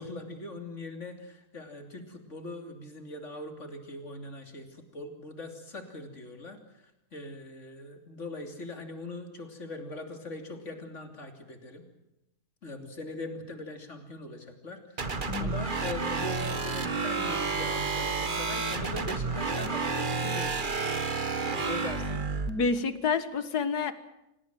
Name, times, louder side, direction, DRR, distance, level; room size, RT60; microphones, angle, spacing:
voice 1, 0.0-11.8 12.6-15.1 15.4-22.4, left 2 dB, 50° left, 6 dB, 3.4 m, -41 dB
sound 1, 15.0-22.5, right 4 dB, 35° right, 1.5 m, -30 dB
voice 2, 22.5-23.9, left 5 dB, 80° left, 13 dB, 2.1 m, -28 dB
26.5 x 18.5 x 7.7 m, 0.89 s
omnidirectional pair, 1.6 m